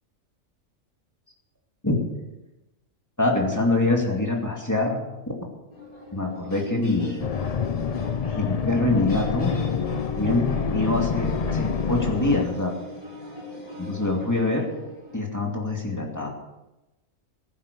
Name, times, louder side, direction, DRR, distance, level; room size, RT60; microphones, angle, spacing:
voice 1, 3.2-5.0 5.3-5.4 6.1-7.2 8.3-9.8 10.2-12.7 13.8-14.7 15.1-16.3, left 2 dB, 15° left, 0 dB, 2.5 m, -24 dB
sound 1, 5.7-15.2, left 1 dB, 30° left, 6.1 m, -41 dB
sound 2, 7.2-12.5, left 6 dB, 55° left, 0.4 m, -27 dB
15.5 x 10.0 x 6.8 m, 1.0 s
omnidirectional pair, 1.4 m